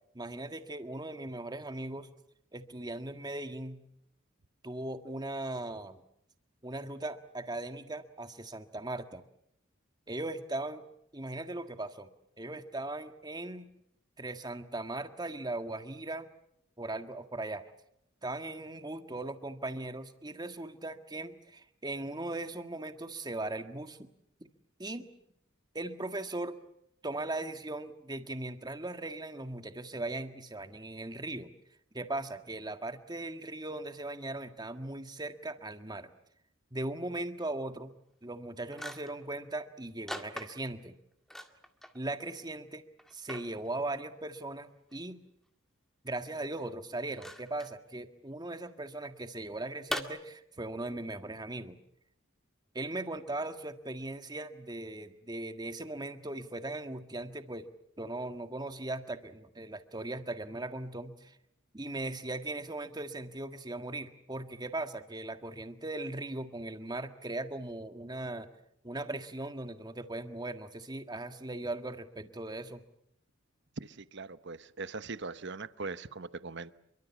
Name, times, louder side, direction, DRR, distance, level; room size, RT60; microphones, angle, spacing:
voice 1, 0.1-2.1 2.5-3.8 4.6-6.0 6.6-9.2 10.1-10.8 11.1-12.1 12.4-13.7 14.2-16.3 16.8-17.6 18.2-24.1 24.8-25.1 25.7-26.6 27.0-31.5 31.9-36.1 36.7-37.9 38.2-40.9 41.9-42.8 43.1-45.2 46.0-51.8 52.7-57.7 58.0-61.4 61.7-68.5 68.8-72.8, right 2 dB, 20° right, 8 dB, 1.7 m, -38 dB
sound 1, 38.2-38.3 38.7-39.2 40.1-40.8 41.3-42.0 42.3-42.4 43.0-43.5 44.9-45.0 47.1-47.7 49.9-50.0, equal, ahead, 1.9 m, -40 dB
voice 2, 73.8-76.7, right 3 dB, 60° right, 14 dB, 1.0 m, -41 dB
27.5 x 23.5 x 7.3 m, 0.75 s
head